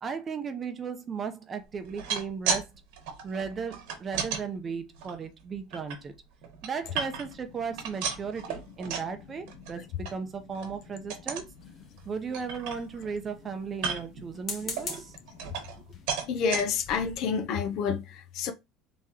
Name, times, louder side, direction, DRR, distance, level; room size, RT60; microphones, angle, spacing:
voice 1, 0.0-2.7 3.2-6.1 6.6-11.4 12.1-15.1, right 5 dB, 25° right, 0.6 m, -36 dB
sound 1, 1.8-2.7 2.9-4.4 5.0-6.0 6.4-7.4 7.7-9.1 9.5-9.7 10.0-10.1 10.5-10.7 11.1-11.5 12.0-12.1 12.3-13.1 13.7-14.2 14.8-15.8 16.1-16.6 17.2-17.3 17.6-17.7, right 6 dB, 75° right, 1.2 m, -34 dB
sound 2, 11.6-12.4 14.3-15.2 15.9-16.1 16.6-16.7 16.9-17.2, left 3 dB, 30° left, 1.4 m, -40 dB
voice 2, 16.3-18.5, left 6 dB, 55° left, 0.6 m, -29 dB
3.6 x 3.0 x 2.9 m
supercardioid pair, 125°, 0 cm